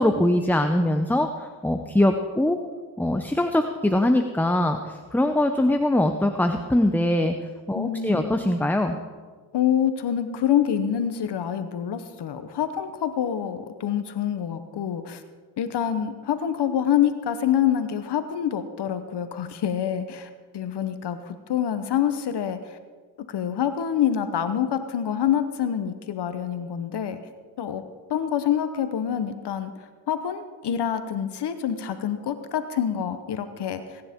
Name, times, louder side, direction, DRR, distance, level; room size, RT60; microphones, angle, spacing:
voice 1, 0.0-2.6 3.0-7.3 7.7-9.0, left 1 dB, 5° left, 6 dB, 0.7 m, -22 dB
voice 2, 7.7-8.4 9.5-15.2 15.6-22.8 23.3-27.2 27.6-27.8 28.1-29.7 30.1-34.0, left 9 dB, 60° left, 9 dB, 1.1 m, -26 dB
21.0 x 10.0 x 3.7 m, 1.5 s
cardioid pair, 75°, 46 cm